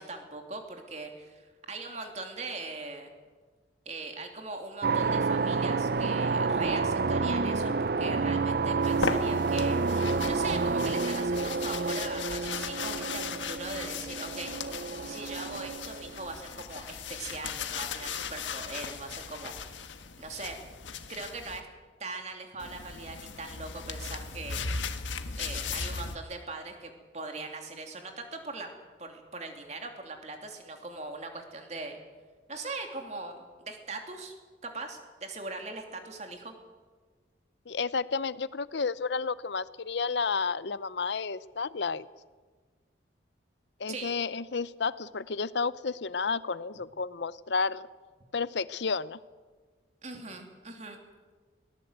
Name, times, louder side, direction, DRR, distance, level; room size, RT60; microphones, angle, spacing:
voice 1, 0.0-3.1 3.8-9.8 10.3-14.5 15.1-19.6 20.2-20.6 21.1-21.7 22.0-24.7 25.4-28.7 29.0-32.0 32.5-34.3 34.6-36.5 43.9-44.2 50.0-51.0, right 3 dB, 35° right, 4 dB, 2.9 m, -40 dB
sound 1, 4.8-16.3, right 4 dB, 55° right, 0.6 m, -29 dB
sound 2, 8.8-21.6 22.6-26.2, left 5 dB, 90° left, 1.5 m, -37 dB
voice 2, 37.7-42.1 43.8-47.9 48.3-49.2, left 4 dB, 70° left, 17 dB, 0.7 m, -31 dB
22.0 x 18.0 x 8.0 m, 1.4 s
head